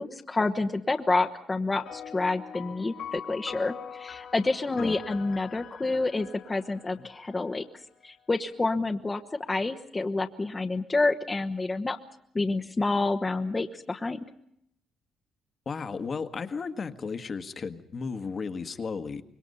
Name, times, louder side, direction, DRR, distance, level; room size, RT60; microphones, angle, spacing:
voice 1, 0.0-7.6 8.0-9.2 9.5-12.0 12.3-14.2, left 3 dB, 25° left, 4 dB, 1.2 m, -28 dB
sound 1, 1.9-7.6, left 8 dB, 70° left, 2.2 m, -43 dB
voice 2, 15.6-19.2, left 5 dB, 40° left, 9 dB, 1.6 m, -34 dB
26.0 x 21.5 x 5.5 m, 0.73 s
cardioid pair, 90°, 0 cm